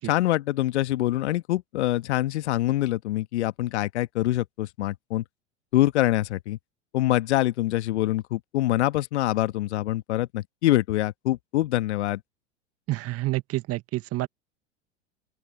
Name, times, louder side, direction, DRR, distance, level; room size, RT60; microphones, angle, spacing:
voice 1, 0.0-5.2 5.7-6.6 6.9-12.2, left 15 dB, 70° left, 1.7 m, -25 dB
voice 2, 12.9-14.3, right 18 dB, 40° right, 1.8 m, -28 dB
open air
hypercardioid pair, 85°, 36 cm